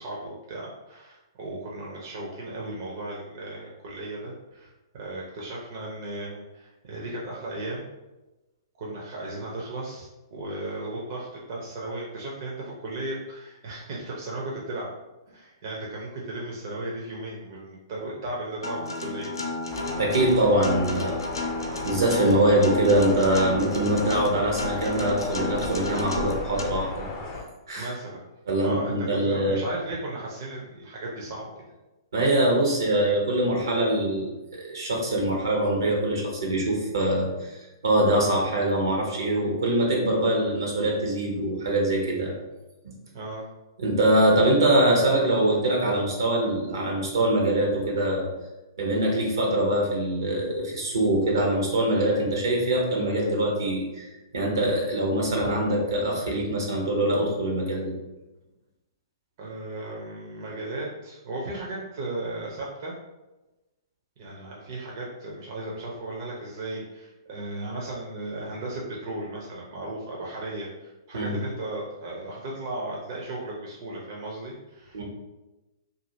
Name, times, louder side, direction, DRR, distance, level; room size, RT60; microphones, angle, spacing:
voice 1, 0.0-7.9 8.8-14.9 15.3-19.3 27.8-28.2 28.6-31.5 43.1-43.5 59.4-62.9 64.2-75.0, right 2 dB, 50° right, -4 dB, 0.7 m, -35 dB
Acoustic guitar, 18.6-26.6, left 2 dB, 85° left, 0.5 m, -32 dB
sound 1, 19.7-27.4, left 3 dB, 35° left, 0.5 m, -37 dB
voice 2, 20.0-21.2 21.8-27.1 27.7-27.9 28.5-29.6 32.1-37.5 37.8-42.3 42.8-42.9 43.8-48.3 48.8-54.1 54.3-57.9 71.1-71.4 74.9-75.0, right 1 dB, 75° right, -1 dB, 0.9 m, -23 dB
2.7 x 2.6 x 2.7 m, 1.0 s
hypercardioid pair, 120°, 2 cm